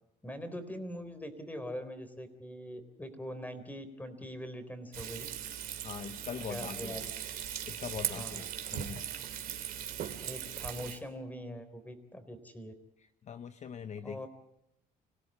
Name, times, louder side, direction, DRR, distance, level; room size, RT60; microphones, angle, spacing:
voice 1, 0.2-5.3 6.4-7.0 8.1-8.5 10.2-12.7 14.0-14.3, equal, 10° left, 10 dB, 3.8 m, -42 dB
Frying (food), 4.9-11.0, right 10 dB, 60° right, 2.6 m, -39 dB
voice 2, 5.8-7.1 7.7-9.0 13.3-14.3, left 7 dB, 45° left, 10 dB, 0.9 m, -42 dB
26.0 x 17.0 x 8.7 m, 0.85 s
cardioid pair, 110°, 17 cm